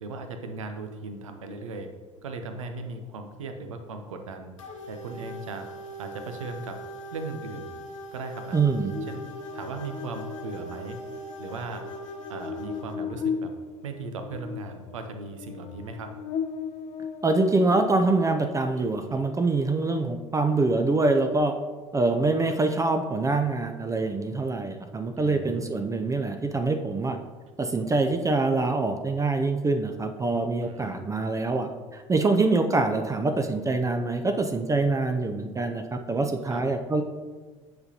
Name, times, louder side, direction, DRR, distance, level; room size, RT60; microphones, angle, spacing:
voice 1, 0.0-1.9 2.2-4.5 4.9-5.7 6.0-6.8 7.1-7.7 8.1-8.6 9.1-9.3 9.5-11.0 11.4-11.8 12.3-13.5 13.8-16.1 19.4-19.5 25.2-25.9 30.6-31.0 36.4-36.7, right 3 dB, 80° right, 6 dB, 0.6 m, -37 dB
sound 1, 4.6-13.0, right 1 dB, 80° left, 0.7 m, -40 dB
voice 2, 8.5-8.9 17.2-21.5 21.9-27.2 27.6-37.0, right 3 dB, 20° right, 6 dB, 0.5 m, -25 dB
Buzz, 8.9-18.4, left 6 dB, 45° left, 0.5 m, -37 dB
7.8 x 5.2 x 2.8 m, 1.4 s
figure-of-eight pair, 60°, 16 cm